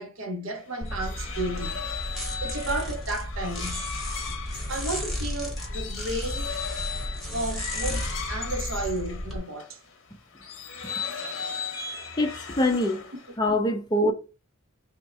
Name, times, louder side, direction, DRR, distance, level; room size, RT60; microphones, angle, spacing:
voice 1, 0.0-1.8 2.4-3.9 4.7-6.5 7.3-9.8, right 1 dB, 65° right, 0.7 m, -33 dB
sound 1, 0.6-9.7 10.4-13.4, left 6 dB, 60° left, 0.8 m, -37 dB
sound 2, 0.8-9.4, equal, ahead, 1.0 m, -33 dB
voice 2, 12.2-13.0 13.4-14.1, left 1 dB, 20° left, 0.5 m, -24 dB
3.5 x 2.1 x 4.1 m
head